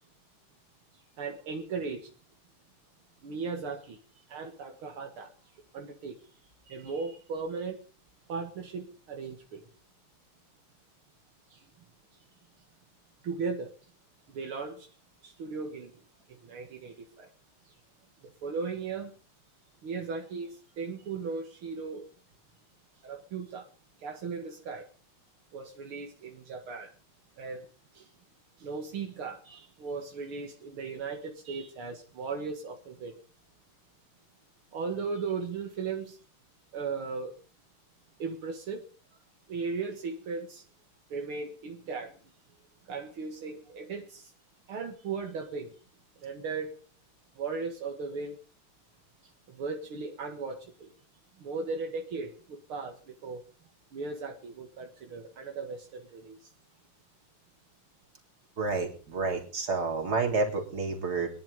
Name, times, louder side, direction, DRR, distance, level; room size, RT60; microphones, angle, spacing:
voice 1, 1.2-2.1 3.2-4.0 4.3-5.3 5.7-6.2 6.7-7.8 8.3-9.7 11.5-11.6 13.2-13.7 14.3-14.9 15.2-15.9 16.3-17.3 18.4-19.1 19.8-22.0 23.0-23.7 24.0-24.9 25.5-26.9 27.4-27.7 27.9-28.1 28.6-33.1 34.7-36.2 36.7-37.3 38.2-38.8 39.5-40.6 41.1-42.2 42.9-44.3 44.7-45.7 46.2-46.7 47.4-48.4 49.5-50.9 51.4-53.4 53.9-56.5, right 4 dB, 80° right, 3 dB, 2.6 m, -37 dB
voice 2, 58.6-61.3, right 3 dB, 45° right, 2 dB, 3.8 m, -29 dB
22.5 x 11.0 x 5.4 m, 0.40 s
omnidirectional pair, 2.3 m